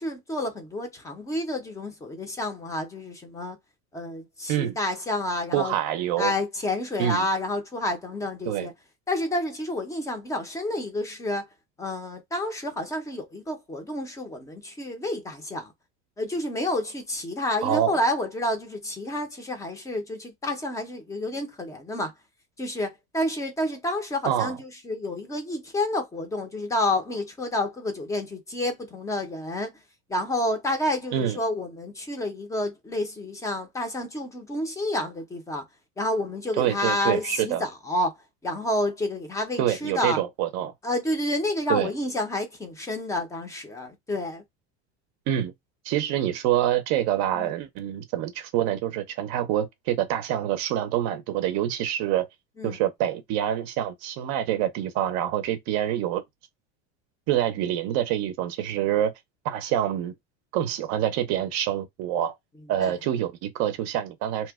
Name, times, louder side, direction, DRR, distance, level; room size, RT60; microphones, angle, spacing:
voice 1, 0.0-3.6 3.9-5.7 6.2-8.7 9.1-11.4 11.8-15.7 16.2-22.1 22.6-29.7 30.1-35.6 36.0-38.2 38.4-40.2 40.8-44.4 47.3-47.5 52.6-52.8 62.8-62.9, left 1 dB, 10° left, 0.5 m, -29 dB
voice 2, 5.5-6.3 7.0-7.2 8.5-8.7 17.6-18.0 24.3-24.5 31.1-31.4 36.6-37.6 39.6-40.7 41.7-41.9 45.3-45.5 45.8-52.3 52.6-56.2 57.3-59.1 59.4-60.1 60.5-62.3 62.7-64.5, right 11 dB, 50° right, 0.5 m, -26 dB
2.8 x 2.1 x 3.4 m
cardioid pair, 160°, 34 cm